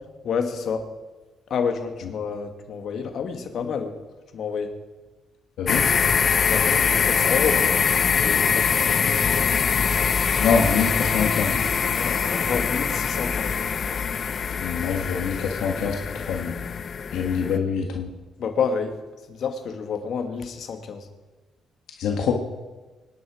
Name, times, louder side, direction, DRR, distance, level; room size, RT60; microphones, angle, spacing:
voice 1, 0.2-0.9 1.5-3.9 4.3-4.8 6.5-7.8 8.1-9.7 11.9-13.7 18.4-19.0 19.3-21.1, left 6 dB, 65° left, 6 dB, 2.0 m, -29 dB
voice 2, 5.6-5.9 10.4-11.6 14.6-16.6 17.1-18.1 22.0-22.3, left 6 dB, 85° left, 1 dB, 1.7 m, -25 dB
sound 1, 5.7-17.6, left 6 dB, 50° left, 0.9 m, -23 dB
24.5 x 10.5 x 5.0 m, 1.2 s
cardioid pair, 90°, 0 cm